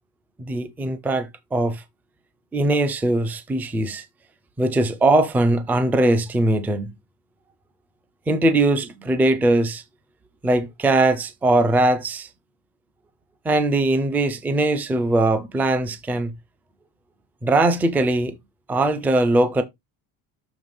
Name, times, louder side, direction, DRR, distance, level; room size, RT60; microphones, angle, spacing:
voice 1, 0.4-1.8 2.5-4.0 4.6-6.9 8.3-9.8 10.4-12.3 13.4-16.3 17.4-18.3 18.7-19.6, right 2 dB, 5° right, 0.4 m, -20 dB
7.0 x 3.3 x 5.2 m
cardioid pair, 175°, 36 cm